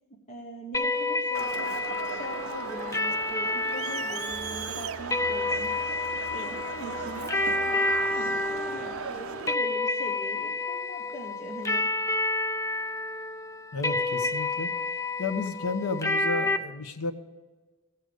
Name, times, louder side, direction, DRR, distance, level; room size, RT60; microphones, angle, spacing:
voice 1, 0.3-1.7 2.0-5.8 6.3-11.9, equal, 30° left, -1 dB, 1.2 m, -42 dB
sound 1, 0.7-16.6, left 2 dB, 15° left, 0.4 m, -29 dB
Crowd, 1.3-9.5, right 6 dB, 70° right, 0.5 m, -37 dB
voice 2, 13.7-14.7 15.2-17.1, left 3 dB, 75° left, 7 dB, 1.0 m, -32 dB
14.5 x 8.0 x 5.1 m, 1.3 s
head